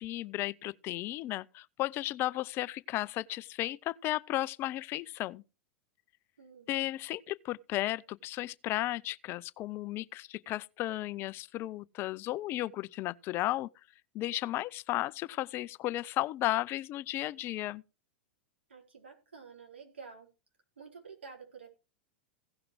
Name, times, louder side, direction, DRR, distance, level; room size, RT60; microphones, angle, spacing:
voice 1, 0.0-5.4 6.7-13.7 14.1-17.8, left 16 dB, 40° left, 0.5 m, -34 dB
voice 2, 6.4-6.7 18.7-20.3 20.8-21.7, right 5 dB, 90° right, 4.1 m, -50 dB
16.5 x 5.8 x 4.8 m
hypercardioid pair, 100°, 6 cm